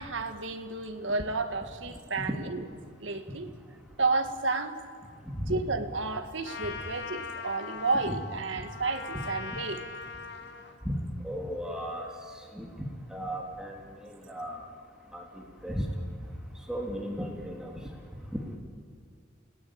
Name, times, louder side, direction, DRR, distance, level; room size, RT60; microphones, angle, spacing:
voice 1, 0.0-2.6 3.0-3.5 4.0-4.8 5.5-9.8, right 3 dB, 75° right, 6 dB, 1.8 m, -31 dB
Trumpet, 6.4-10.8, left 5 dB, 60° left, 1.7 m, -41 dB
voice 2, 11.2-12.1 12.5-12.9 13.1-14.6 15.1-15.8 16.7-17.7, equal, 5° right, -1 dB, 3.2 m, -35 dB
29.5 x 18.5 x 8.7 m, 2.2 s
head